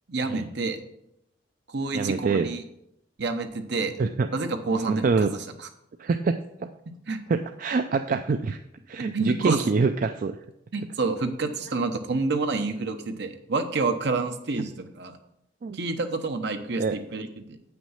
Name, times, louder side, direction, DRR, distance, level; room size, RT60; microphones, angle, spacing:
voice 1, 0.1-0.8 1.7-2.6 3.2-3.9 4.3-5.3 6.9-7.2 9.1-9.6 10.7-15.2 15.7-17.6, right 3 dB, 65° right, 7 dB, 0.9 m, -28 dB
voice 2, 1.9-2.5 4.0-4.3 4.7-5.3 6.0-6.7 7.3-8.6 8.9-10.4 15.6-15.8 16.8-17.0, right 4 dB, 45° right, 8 dB, 0.4 m, -25 dB
8.2 x 6.1 x 5.6 m, 0.81 s
head